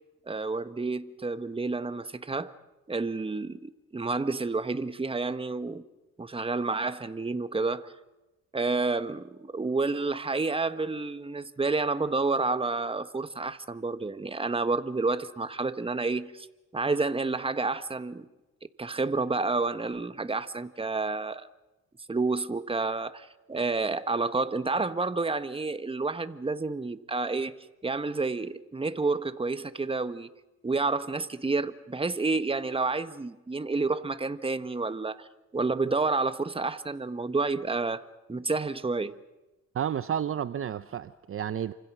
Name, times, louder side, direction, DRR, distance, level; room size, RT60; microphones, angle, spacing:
voice 1, 0.3-2.5 2.9-5.8 6.2-7.9 8.5-16.5 16.7-18.3 18.8-21.5 22.1-30.3 30.6-35.3 35.5-38.0 38.3-39.2, right 3 dB, 20° right, 1.4 m, -29 dB
voice 2, 39.7-41.7, right 9 dB, 45° right, 0.8 m, -31 dB
28.5 x 25.5 x 6.2 m
cardioid pair, 90°, 30 cm